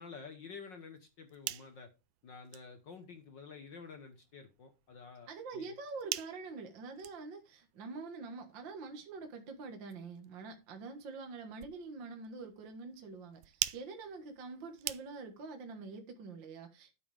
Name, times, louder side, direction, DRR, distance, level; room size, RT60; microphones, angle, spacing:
voice 1, 0.0-1.9 2.2-5.7, left 5 dB, 55° left, 1.3 m, -50 dB
sound 1, 1.1-15.5, right 16 dB, 80° right, 2.0 m, -46 dB
voice 2, 5.3-16.9, right 4 dB, 45° right, 1.9 m, -45 dB
12.5 x 7.5 x 3.4 m
omnidirectional pair, 3.4 m